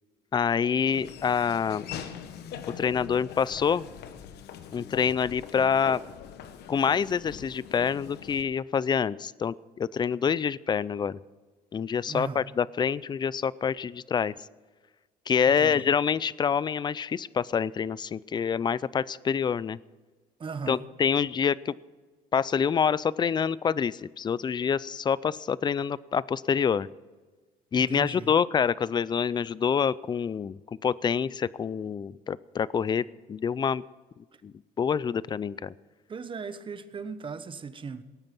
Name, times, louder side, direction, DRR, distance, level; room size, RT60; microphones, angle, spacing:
voice 1, 0.3-1.8 2.8-3.9 4.7-6.0 6.7-11.2 11.7-14.3 15.3-19.8 20.7-21.7 22.3-26.9 27.7-33.8 34.4-34.5 34.8-35.7, left 7 dB, 25° left, 21 dB, 0.4 m, -26 dB
Laughter / Walk footsteps, 0.9-8.4, left 8 dB, 75° left, 1.2 m, -42 dB
voice 2, 12.1-12.5 15.5-15.9 20.4-20.8 27.8-28.3 36.1-38.0, right 5 dB, 30° right, 12 dB, 1.0 m, -37 dB
18.5 x 9.0 x 6.0 m, 1.3 s
cardioid pair, 110°, 17 cm